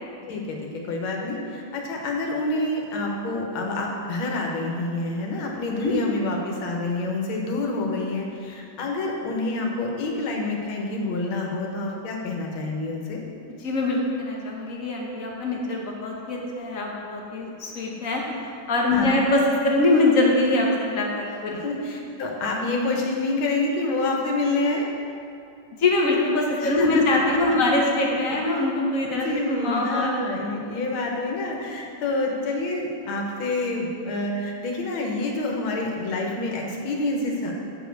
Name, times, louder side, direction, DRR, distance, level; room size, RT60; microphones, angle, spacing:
voice 1, 0.9-13.2 18.9-19.2 21.6-24.9 26.6-27.2 29.1-37.5, left 2 dB, 85° left, 0 dB, 1.8 m, -27 dB
voice 2, 13.6-21.7 25.8-30.1, left 2 dB, 50° left, -1 dB, 1.2 m, -23 dB
8.4 x 5.1 x 4.6 m, 2.5 s
omnidirectional pair, 2.2 m